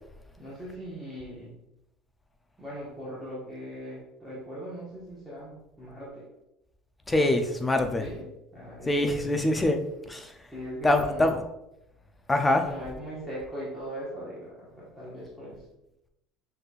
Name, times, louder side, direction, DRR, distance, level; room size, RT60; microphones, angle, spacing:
voice 1, 0.4-1.5 2.6-6.3 8.0-8.2 8.5-9.6 10.5-11.4 12.6-15.6, equal, 5° right, -8 dB, 1.2 m, -40 dB
voice 2, 7.1-8.0 8.9-9.8 10.1-10.3 10.8-11.4 12.3-12.7, left 1 dB, 10° left, 5 dB, 0.5 m, -24 dB
6.2 x 3.3 x 2.4 m, 0.87 s
cardioid pair, 140°, 0 cm